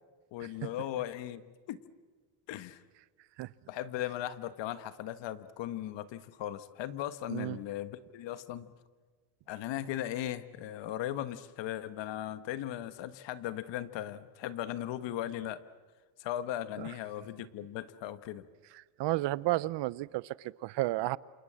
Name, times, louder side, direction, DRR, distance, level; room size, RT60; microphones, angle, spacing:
voice 1, 0.3-1.8 2.5-2.8 3.7-8.7 9.5-15.6 16.2-18.4, left 12 dB, 70° left, 13 dB, 1.5 m, -38 dB
voice 2, 19.0-21.2, right 18 dB, 65° right, 21 dB, 0.8 m, -32 dB
28.0 x 28.0 x 7.6 m, 1.4 s
cardioid pair, 130°, 45 cm